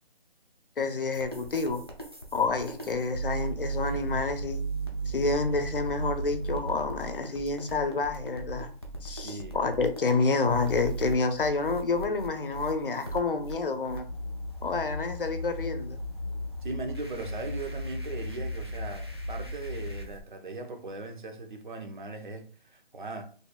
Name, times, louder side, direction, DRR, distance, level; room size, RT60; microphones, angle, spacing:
voice 1, 0.8-1.8 2.3-4.7 5.1-8.7 9.0-14.1 14.6-16.0, left 4 dB, 60° left, 0.7 m, -29 dB
sound 1, 1.1-20.2, right 2 dB, 25° right, 0.4 m, -36 dB
voice 2, 9.2-9.6 16.6-23.2, right 3 dB, 50° right, 0.8 m, -39 dB
4.2 x 3.3 x 2.2 m
hypercardioid pair, 175°, 30 cm